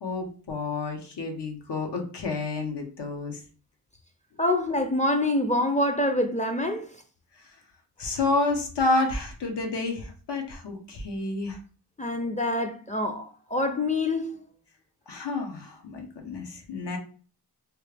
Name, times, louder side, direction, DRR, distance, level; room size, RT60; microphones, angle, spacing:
voice 1, 0.0-3.4 8.0-11.6 15.1-17.0, left 3 dB, 85° left, 0.9 m, -29 dB
voice 2, 4.4-6.8 12.0-13.3 13.5-14.3, left 1 dB, 20° left, 0.4 m, -25 dB
3.1 x 2.4 x 3.3 m
wide cardioid pair, 85°, 40 cm